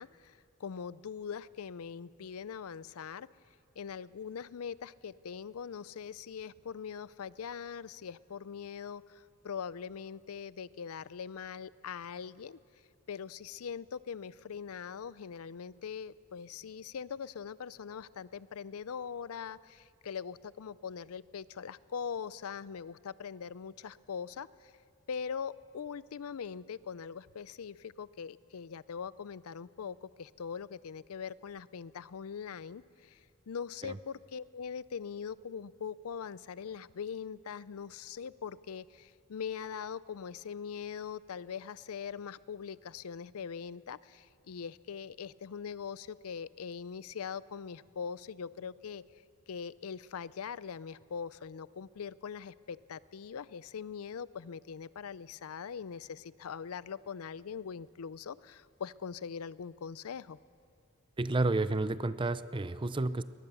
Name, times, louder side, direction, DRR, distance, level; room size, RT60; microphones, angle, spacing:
voice 1, 0.0-3.3 3.8-12.6 13.1-24.7 25.1-33.2 33.5-49.0 49.5-60.4, left 6 dB, 75° left, 19 dB, 0.5 m, -42 dB
voice 2, 61.2-63.2, right 2 dB, 20° right, 14 dB, 0.5 m, -31 dB
22.0 x 19.5 x 7.0 m, 2.2 s
head